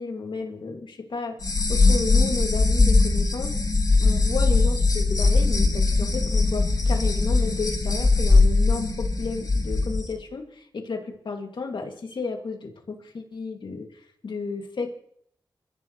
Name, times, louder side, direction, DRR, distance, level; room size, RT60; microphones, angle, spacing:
voice 1, 0.0-1.4 1.7-3.6 4.0-13.9 14.2-14.9, left 4 dB, 75° left, 2 dB, 2.4 m, -32 dB
sound 1, 1.4-10.0, left 3 dB, 50° left, 7.6 m, -20 dB
28.0 x 15.0 x 3.2 m, 0.71 s
cardioid pair, 65°, 8 cm